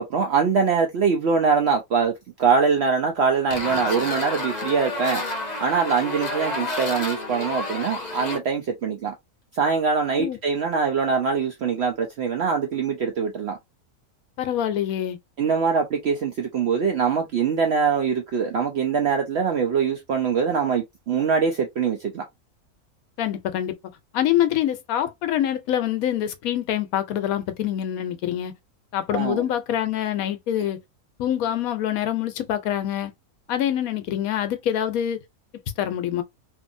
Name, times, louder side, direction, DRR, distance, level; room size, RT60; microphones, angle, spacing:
voice 1, 0.0-2.1 2.4-5.2 5.6-9.1 9.5-13.6 15.4-22.2 29.1-29.4, right 6 dB, 70° right, 0.6 m, -23 dB
sound 1, 3.5-8.4, left 2 dB, 35° left, 0.8 m, -30 dB
voice 2, 14.4-15.2 23.2-23.8 24.1-28.5 28.9-30.8 31.2-33.1 33.5-35.2 35.8-36.2, left 11 dB, 75° left, 1.0 m, -25 dB
2.6 x 2.5 x 2.6 m
omnidirectional pair, 1.6 m